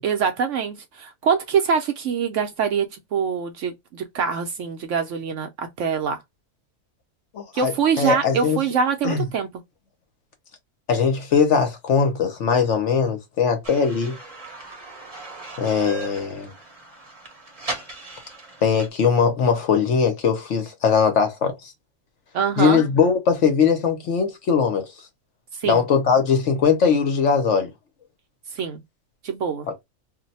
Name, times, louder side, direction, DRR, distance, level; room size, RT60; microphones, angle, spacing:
voice 1, 0.0-6.2 7.5-9.5 22.3-22.8 25.5-25.8 28.5-28.8 29.2-29.7, right 6 dB, 65° right, 0.8 m, -24 dB
voice 2, 7.3-8.6 9.0-9.2 10.9-14.2 15.6-16.5 18.6-21.7 22.6-24.9 25.6-27.7 29.7-29.8, left 6 dB, 60° left, 0.9 m, -20 dB
sound 1, 13.6-18.9, right 2 dB, 30° right, 0.7 m, -38 dB
2.6 x 2.1 x 4.0 m
omnidirectional pair, 1.6 m